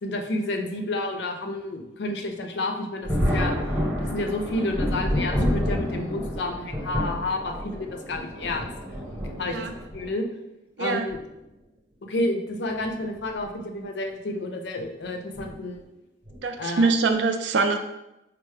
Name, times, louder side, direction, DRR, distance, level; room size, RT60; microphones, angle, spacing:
voice 1, 0.0-3.5 4.0-8.7 9.4-9.6 9.9-10.2 10.8-11.2 12.0-15.8 16.6-16.9, left 2 dB, 65° left, 4 dB, 0.4 m, -30 dB
Thunder, 3.0-10.1 11.1-11.2 12.7-12.9 13.3-13.4 15.3-15.6 16.3-16.6, equal, 10° right, 0.8 m, -28 dB
voice 2, 16.4-17.8, right 4 dB, 70° right, 6 dB, 0.4 m, -23 dB
4.3 x 2.0 x 3.2 m, 0.92 s
head